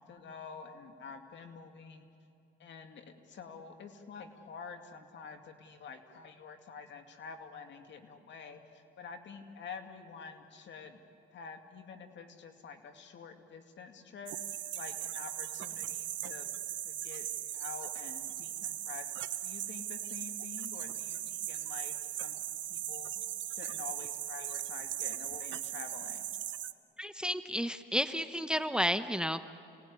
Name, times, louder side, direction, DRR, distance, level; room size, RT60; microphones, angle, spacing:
voice 1, 0.0-2.1 2.6-11.0 11.3-14.4 14.7-16.5 16.8-17.3 17.5-26.2, left 5 dB, 70° left, 6 dB, 2.4 m, -48 dB
sound 1, 14.3-26.7, right 12 dB, 70° right, 0.9 m, -38 dB
voice 2, 27.0-29.4, equal, 5° right, 11 dB, 0.9 m, -32 dB
29.0 x 19.0 x 9.8 m, 2.7 s
cardioid pair, 90°, 20 cm